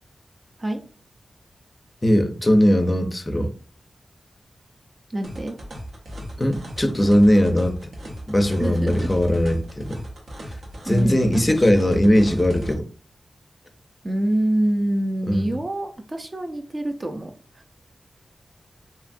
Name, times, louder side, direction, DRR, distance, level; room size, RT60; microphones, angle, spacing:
voice 1, 2.0-3.5 6.4-7.8 8.3-10.0 10.8-12.9 15.3-15.5, equal, 25° left, 0.5 m, -19 dB
voice 2, 5.1-5.6 8.6-9.1 10.8-11.7 14.0-17.6, right 1 dB, 35° right, 0.4 m, -26 dB
sound 1, 5.2-12.7, equal, 75° right, 0.7 m, -36 dB
2.8 x 2.4 x 2.5 m
wide cardioid pair, 75°, 0 cm